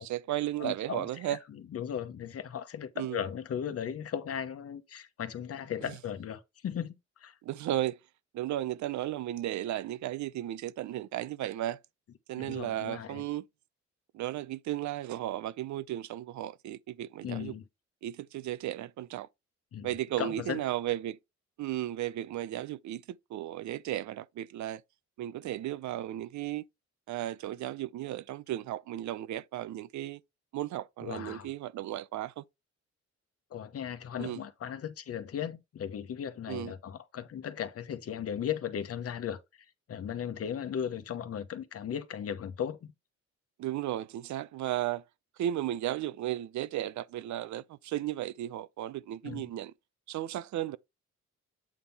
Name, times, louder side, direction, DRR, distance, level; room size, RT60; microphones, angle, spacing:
voice 1, 0.0-1.4 3.0-3.2 7.4-8.0 8.3-11.8 12.3-13.4 14.1-17.5 18.0-19.3 19.8-21.2 21.6-24.8 25.2-26.6 27.1-30.2 30.5-32.4 34.2-34.4 36.5-36.7 43.6-45.0 45.4-49.7 50.1-50.8, right 13 dB, 75° right, 0.6 m, -35 dB
voice 2, 0.6-7.4 12.3-13.2 17.2-17.6 19.7-20.6 31.0-31.5 33.5-42.9 49.2-49.5, left 8 dB, 55° left, 1.0 m, -37 dB
8.4 x 3.6 x 4.2 m
cardioid pair, 115°, 29 cm